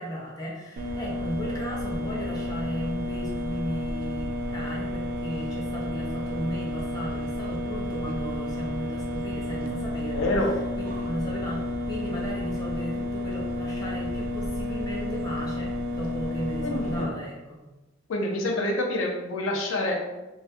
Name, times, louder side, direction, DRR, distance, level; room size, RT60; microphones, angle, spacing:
voice 1, 0.0-10.4 10.8-17.6, equal, 20° left, -4 dB, 0.5 m, -35 dB
sound 1, 0.8-17.0, left 1 dB, 45° right, 0.3 m, -31 dB
voice 2, 10.1-10.5 16.6-17.1 18.1-20.0, left 1 dB, 90° left, 0 dB, 0.4 m, -27 dB
2.2 x 2.1 x 2.7 m, 1.1 s
head